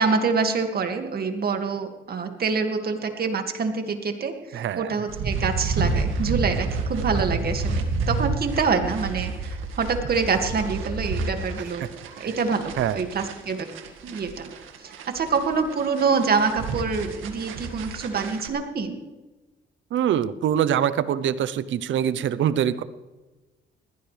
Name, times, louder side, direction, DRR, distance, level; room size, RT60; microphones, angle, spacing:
voice 1, 0.0-11.8 12.2-13.7 14.0-14.5 14.8-19.0, right 5 dB, 50° right, 5 dB, 2.2 m, -26 dB
voice 2, 4.5-5.0 12.8-13.0 19.9-22.8, right 10 dB, 70° right, 15 dB, 0.8 m, -24 dB
sound 1, 5.1-18.5, right 3 dB, 90° right, 2.0 m, -30 dB
20.5 x 15.5 x 3.4 m, 1.2 s
cardioid pair, 90°, 20 cm